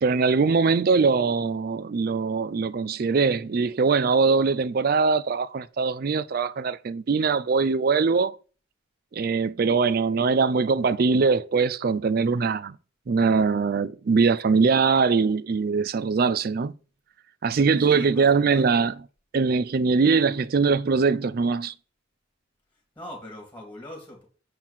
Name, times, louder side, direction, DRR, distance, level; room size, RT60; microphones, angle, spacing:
voice 1, 0.0-8.4 9.1-12.8 13.1-16.7 17.4-18.9 19.3-21.7, right 4 dB, 45° right, 0.4 m, -22 dB
voice 2, 17.8-18.9 23.0-24.2, left 1 dB, 10° left, 2.3 m, -42 dB
7.4 x 4.6 x 5.6 m
head